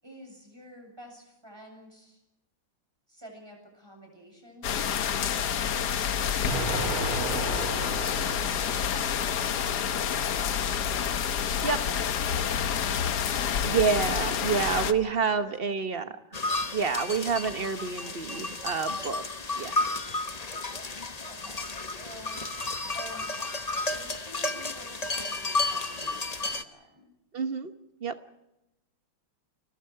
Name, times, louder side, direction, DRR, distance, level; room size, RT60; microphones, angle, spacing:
voice 1, 0.0-2.2 3.1-10.8 11.5-13.0 13.4-13.7 14.3-14.7 15.1-16.2 21.3-21.6 21.9-22.4 22.9-23.5 23.8-27.1, equal, 10° right, 2 dB, 7.5 m, -50 dB
sound 1, 4.6-14.9, left 8 dB, 55° left, 1.4 m, -28 dB
Explosion, 6.5-9.4, right 3 dB, 80° right, 3.8 m, -34 dB
voice 2, 13.7-16.1 16.7-19.2 19.6-20.0 27.3-27.7 28.0-28.1, right 5 dB, 40° right, 9 dB, 0.8 m, -28 dB
sound 2, 16.3-26.6, left 2 dB, 35° left, 0.6 m, -32 dB
30.0 x 23.0 x 4.7 m, 0.90 s
omnidirectional pair, 2.3 m